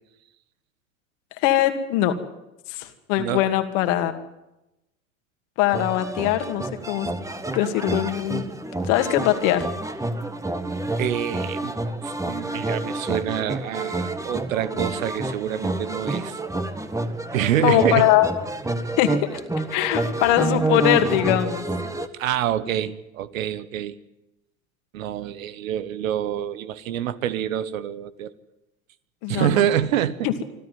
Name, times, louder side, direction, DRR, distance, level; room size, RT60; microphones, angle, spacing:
voice 1, 1.4-2.2 2.7-4.1 5.6-7.1 7.5-8.4 8.9-9.7 17.6-18.3 19.0-19.4 19.7-21.6 29.2-29.5 30.2-30.3, left 13 dB, 65° left, 7 dB, 2.6 m, -21 dB
sound 1, 5.7-22.1, right 2 dB, 10° right, 1.6 m, -28 dB
voice 2, 11.0-11.7 12.0-16.4 17.3-18.1 22.1-24.0 24.9-28.3 29.3-30.3, right 10 dB, 80° right, 15 dB, 1.3 m, -26 dB
25.5 x 13.0 x 9.4 m, 0.94 s
hypercardioid pair, 85°, 40 cm